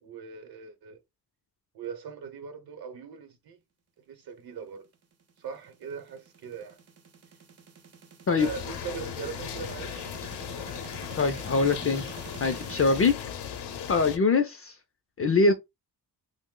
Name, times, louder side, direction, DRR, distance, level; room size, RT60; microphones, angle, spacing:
voice 1, 0.0-1.0 1.7-3.6 4.1-4.8 5.4-6.8 8.4-10.1, right 6 dB, 65° right, 0.8 m, -40 dB
sound 1, 5.0-13.1, right 6 dB, 40° right, 0.5 m, -48 dB
sound 2, 8.4-14.2, left 8 dB, 85° left, 0.6 m, -37 dB
voice 2, 11.2-12.0 12.4-13.1 13.9-14.7 15.2-15.5, left 4 dB, 35° left, 0.4 m, -23 dB
3.0 x 2.0 x 3.6 m
wide cardioid pair, 155°, 40 cm